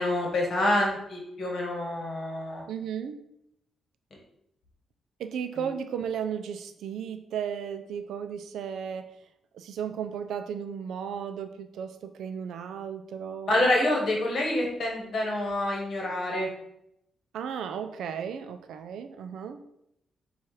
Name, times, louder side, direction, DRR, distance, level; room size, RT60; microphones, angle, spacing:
voice 1, 0.0-2.6 13.5-16.5, left 1 dB, 50° left, -1 dB, 1.2 m, -27 dB
voice 2, 2.7-3.2 5.2-9.1 9.5-13.7 17.3-19.6, right 7 dB, 90° right, 9 dB, 0.4 m, -35 dB
4.3 x 2.4 x 4.7 m, 0.79 s
cardioid pair, 145°, 0 cm